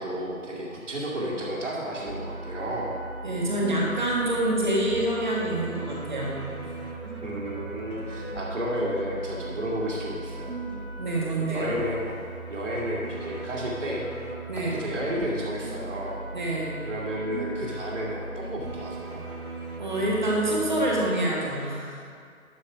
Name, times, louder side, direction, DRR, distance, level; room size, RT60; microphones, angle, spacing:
voice 1, 0.0-3.0 7.2-10.5 11.4-14.1 14.7-16.2 16.8-19.2, equal, 60° right, -4 dB, 2.5 m, -32 dB
sound 1, 2.1-21.1, right 2 dB, 90° right, 1.5 m, -38 dB
voice 2, 3.2-6.5 11.0-11.7 14.5-14.8 16.3-16.8 19.8-22.0, right 1 dB, 35° right, -4 dB, 1.6 m, -26 dB
12.0 x 4.7 x 5.0 m, 2.3 s
figure-of-eight pair, 165°, 42 cm